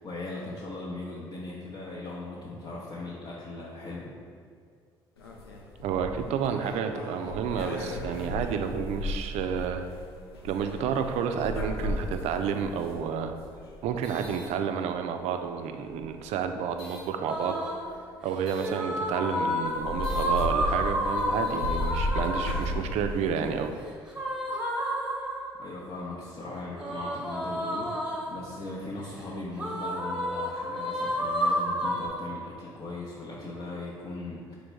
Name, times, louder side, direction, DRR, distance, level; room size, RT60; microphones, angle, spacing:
voice 1, 0.0-4.1 25.6-34.6, left 2 dB, 40° left, -6 dB, 0.7 m, -39 dB
sound 1, 5.2-15.2 15.8-17.1 18.5-18.7 19.3-19.4 19.6-23.8, left 2 dB, 90° left, 0.4 m, -35 dB
voice 2, 5.8-9.8 10.4-13.3 13.8-17.6 18.2-23.7, right 7 dB, 60° right, 6 dB, 0.4 m, -30 dB
sound 2, 17.3-17.9 18.6-22.7 24.1-25.6 26.8-28.5 29.6-32.1, equal, 5° right, 0.9 m, -30 dB
3.9 x 3.1 x 3.4 m, 2.1 s
hypercardioid pair, 50°, 12 cm